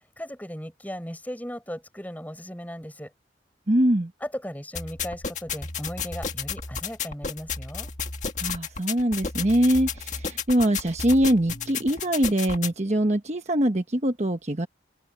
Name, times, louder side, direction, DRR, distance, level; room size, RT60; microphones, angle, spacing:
voice 1, 0.2-3.1 4.2-7.9, equal, 10° left, 5.2 m, -37 dB
voice 2, 3.7-4.1 8.4-14.7, right 1 dB, 35° right, 1.2 m, -23 dB
sound 1, 4.7-12.7, left 6 dB, 40° left, 1.9 m, -33 dB
open air
head